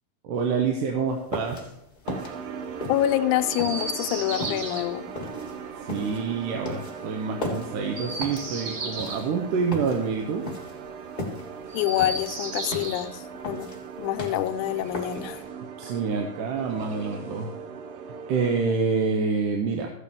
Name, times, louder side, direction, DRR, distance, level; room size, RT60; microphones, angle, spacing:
voice 1, 0.2-1.6 5.8-10.5 15.8-17.5 18.3-19.9, right 5 dB, 90° right, 2 dB, 2.4 m, -27 dB
sound 1, 1.1-15.5, left 2 dB, 30° left, 0.7 m, -37 dB
sound 2, 2.0-18.7, right 6 dB, 70° right, 1.7 m, -39 dB
voice 2, 2.9-5.1 11.7-13.7 14.0-15.4, left 13 dB, 80° left, 10 dB, 1.9 m, -26 dB
Chirp tweet, 3.5-4.8 7.8-9.2 11.6-13.1 14.5-15.6 16.7-17.6, right 3 dB, 50° right, 2.0 m, -36 dB
13.5 x 8.2 x 3.6 m, 0.82 s
omnidirectional pair, 3.7 m